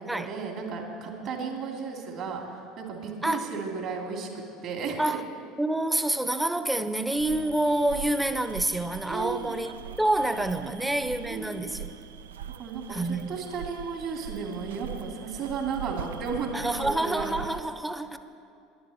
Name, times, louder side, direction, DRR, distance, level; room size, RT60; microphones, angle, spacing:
voice 1, 0.0-5.2 9.1-9.6 10.6-10.7 11.2-11.7 12.6-17.5, right 5 dB, 50° right, 1 dB, 2.6 m, -34 dB
voice 2, 5.6-11.9 12.9-13.4 16.5-18.2, right 1 dB, 5° right, 11 dB, 0.7 m, -27 dB
sound 1, 7.2-17.6, right 9 dB, 75° right, 0.4 m, -41 dB
11.0 x 11.0 x 7.8 m, 2.4 s
figure-of-eight pair, 65°, 0 cm